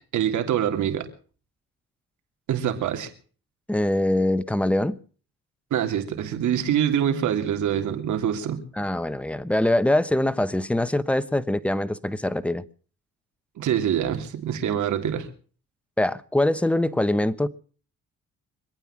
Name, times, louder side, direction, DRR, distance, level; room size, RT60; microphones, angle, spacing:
voice 1, 0.1-1.1 2.5-3.1 5.7-8.6 13.6-15.3, right 9 dB, 75° right, 6 dB, 3.1 m, -25 dB
voice 2, 3.7-5.0 8.8-12.6 16.0-17.5, left 1 dB, 5° left, 15 dB, 1.0 m, -23 dB
25.0 x 9.2 x 5.9 m, 0.41 s
cardioid pair, 90°, 30 cm